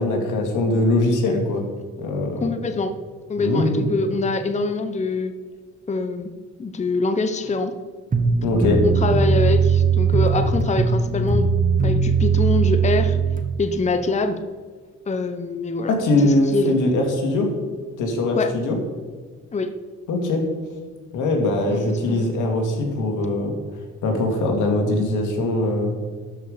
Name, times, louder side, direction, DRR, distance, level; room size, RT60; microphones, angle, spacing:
voice 1, 0.0-1.6 2.0-2.5 3.4-3.9 8.4-8.8 15.9-17.5 18.0-18.8 20.1-20.4 21.1-23.5 24.0-25.9, left 2 dB, 85° left, 2 dB, 2.2 m, -21 dB
voice 2, 2.4-2.9 3.3-5.3 5.9-6.3 6.6-7.8 8.8-11.5 11.8-13.2 13.6-14.4 15.1-15.9 16.2-16.8 18.3-18.5 19.5-19.7 21.7-22.3, left 3 dB, 25° left, 8 dB, 0.7 m, -24 dB
sound 1, 8.1-13.4, right 5 dB, 25° right, 1.2 m, -19 dB
12.5 x 5.5 x 5.0 m, 1.5 s
cardioid pair, 90°, 30 cm